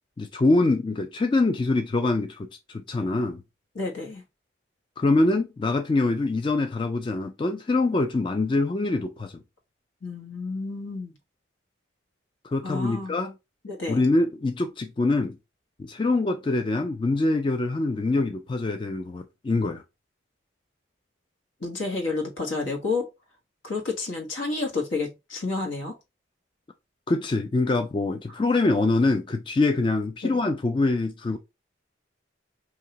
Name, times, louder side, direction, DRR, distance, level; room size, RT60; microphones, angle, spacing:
voice 1, 0.2-3.4 5.0-9.4 12.4-13.3 13.9-15.4 15.8-19.8 27.1-31.4, left 2 dB, 25° left, 0.3 m, -24 dB
voice 2, 3.7-4.2 10.0-11.1 12.6-13.2 13.6-14.1 21.6-23.1 23.6-26.0 30.2-30.3, left 3 dB, 80° left, 1.4 m, -30 dB
4.7 x 2.7 x 2.9 m
head